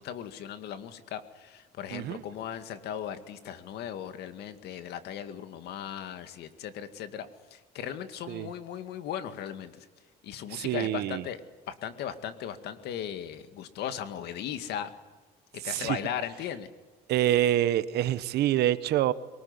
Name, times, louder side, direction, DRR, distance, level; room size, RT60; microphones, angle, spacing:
voice 1, 0.0-9.7 10.2-11.4 11.7-14.9 15.6-16.7, left 9 dB, 75° left, 10 dB, 2.1 m, -37 dB
voice 2, 1.9-2.2 8.3-8.5 10.5-11.2 15.6-16.0 17.1-19.1, right 12 dB, 75° right, 14 dB, 1.3 m, -26 dB
23.0 x 20.0 x 9.7 m, 1.3 s
cardioid pair, 110°, 17 cm